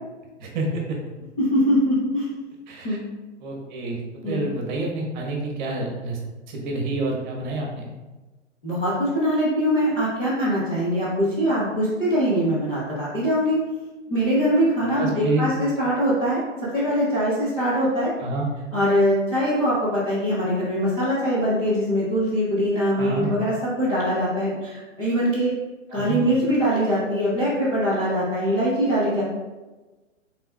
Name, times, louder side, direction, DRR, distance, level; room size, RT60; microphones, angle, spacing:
voice 1, 0.4-1.0 2.7-3.0 3.4-4.0 4.2-6.2 6.5-7.9 14.8-15.5 18.2-18.5 23.0-23.3 25.9-26.2, right 2 dB, 35° right, 0 dB, 1.1 m, -28 dB
voice 2, 1.4-2.3 2.8-3.0 4.2-4.5 8.6-13.6 14.1-16.4 16.7-18.1 18.7-25.5 25.9-29.2, equal, 10° left, -11 dB, 0.4 m, -22 dB
5.6 x 3.6 x 2.2 m, 1.2 s
hypercardioid pair, 125°, 38 cm